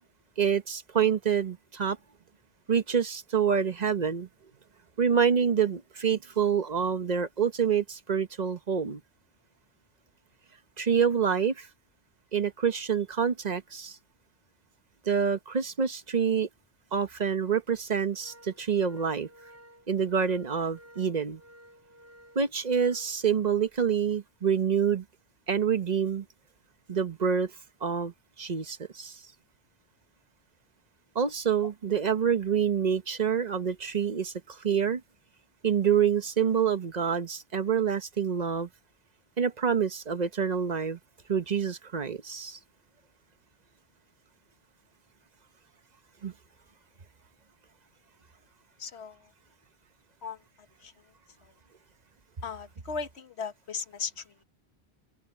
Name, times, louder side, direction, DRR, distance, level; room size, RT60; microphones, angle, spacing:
voice 1, 0.4-2.0 2.7-4.3 5.0-9.0 10.8-11.7 12.3-14.0 15.1-16.5 16.9-19.3 19.9-21.4 22.3-25.0 25.5-26.2 26.9-27.5 27.8-28.1 28.4-29.2 31.1-35.0 35.6-38.7 39.4-41.0 41.3-42.6 46.2-46.3, right 7 dB, 40° right, 1.0 m, -27 dB
Organ, 16.0-16.2 16.6-16.7 17.5-23.8, equal, 15° right, 5.3 m, -55 dB
voice 2, 48.8-49.3 50.2-50.4 50.8-50.9 51.4-51.5 52.4-54.4, left 5 dB, 75° left, 1.6 m, -37 dB
omnidirectional pair, 1.1 m